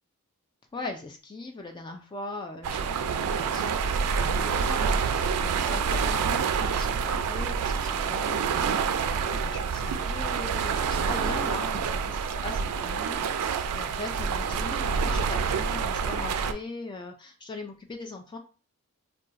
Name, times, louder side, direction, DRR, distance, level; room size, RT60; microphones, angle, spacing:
voice 1, 0.7-18.4, left 3 dB, 20° left, 3 dB, 0.3 m, -40 dB
sound 1, 2.6-16.5, right 6 dB, 85° right, 0.3 m, -27 dB
2.4 x 2.3 x 3.9 m, 0.36 s
head